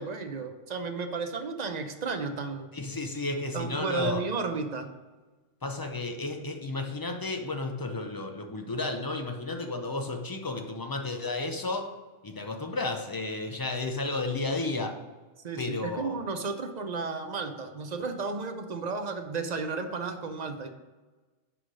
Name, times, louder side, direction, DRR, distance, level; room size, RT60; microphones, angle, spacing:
voice 1, 0.0-2.7 3.5-4.9 15.4-20.7, right 4 dB, 45° right, 6 dB, 0.6 m, -33 dB
voice 2, 2.7-4.3 5.6-11.9 12.2-15.0 15.6-16.2, left 2 dB, 30° left, 4 dB, 0.4 m, -32 dB
6.2 x 4.9 x 6.2 m, 1.2 s
omnidirectional pair, 1.3 m